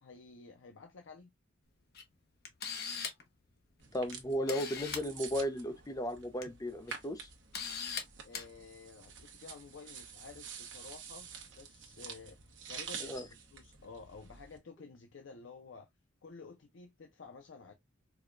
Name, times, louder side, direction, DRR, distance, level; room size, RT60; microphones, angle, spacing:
voice 1, 0.0-1.3 8.2-12.4 12.7-15.9 16.2-17.7, left 4 dB, 80° left, 0.5 m, -52 dB
Camera, 1.9-2.0 2.4-3.3 4.1-4.2 4.5-5.0 6.2-6.4 6.9-7.0 7.5-8.0 8.3-8.5, left 6 dB, 55° left, 0.8 m, -39 dB
sound 1, 3.8-14.6, right 6 dB, 70° right, 1.0 m, -49 dB
voice 2, 3.9-7.3 13.0-13.2, equal, 20° left, 0.5 m, -35 dB
4.7 x 2.2 x 2.4 m
head